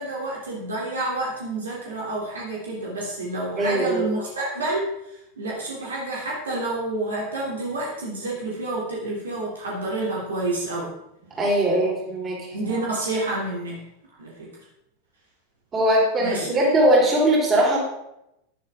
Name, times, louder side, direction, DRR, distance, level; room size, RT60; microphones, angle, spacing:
voice 1, 0.0-10.9 12.5-13.8 14.2-14.5 16.2-16.7, right 2 dB, 75° right, -4 dB, 3.3 m, -29 dB
voice 2, 3.6-4.1 11.3-12.5 15.7-17.8, right 1 dB, 25° right, -3 dB, 4.7 m, -20 dB
12.0 x 11.0 x 3.8 m, 0.83 s
figure-of-eight pair, 85°, 0 cm